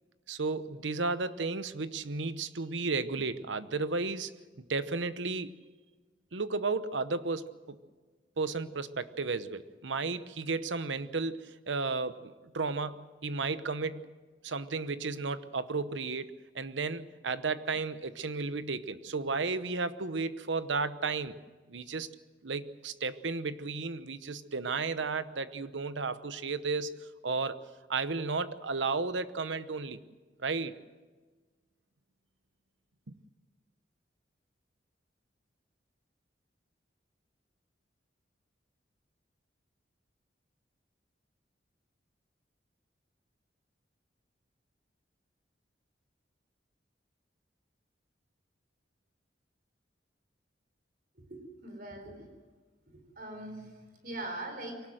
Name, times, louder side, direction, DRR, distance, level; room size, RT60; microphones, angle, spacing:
voice 1, 0.3-4.3 4.7-5.5 6.3-7.8 8.4-14.1 14.4-21.4 21.7-22.1 22.4-27.6 27.9-30.0 30.4-30.8 33.1-33.2, right 4 dB, 85° right, 13 dB, 1.0 m, -33 dB
voice 2, 51.2-52.3 52.9-54.8, right 1 dB, 50° right, 5 dB, 4.6 m, -42 dB
23.5 x 18.5 x 7.8 m, 1.4 s
head